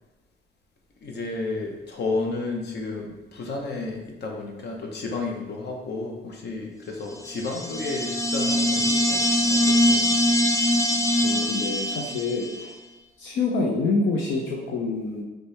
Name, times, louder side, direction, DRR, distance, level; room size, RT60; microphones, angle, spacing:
voice 1, 1.0-10.4, left 3 dB, 55° left, 1 dB, 0.9 m, -32 dB
sound 1, 7.2-12.6, left 1 dB, 15° left, 0.4 m, -23 dB
voice 2, 11.2-12.7 13.2-15.2, left 3 dB, 80° left, -2 dB, 0.6 m, -26 dB
4.4 x 3.2 x 3.3 m, 1.1 s
cardioid pair, 90°, 20 cm